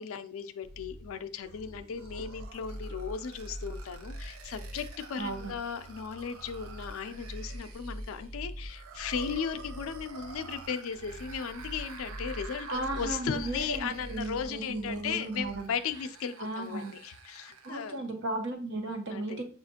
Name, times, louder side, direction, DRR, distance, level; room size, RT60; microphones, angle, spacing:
voice 1, 0.0-18.1 19.1-19.4, left 7 dB, 80° left, 9 dB, 0.4 m, -36 dB
sound 1, 0.6-15.6, right 1 dB, 35° right, 0.4 m, -44 dB
sound 2, 1.4-18.1, right 5 dB, 85° right, 0.5 m, -50 dB
voice 2, 5.2-5.5 12.7-15.7 16.4-16.9 17.6-19.4, right 2 dB, 55° right, 3 dB, 0.8 m, -35 dB
6.2 x 2.4 x 2.7 m, 0.42 s
head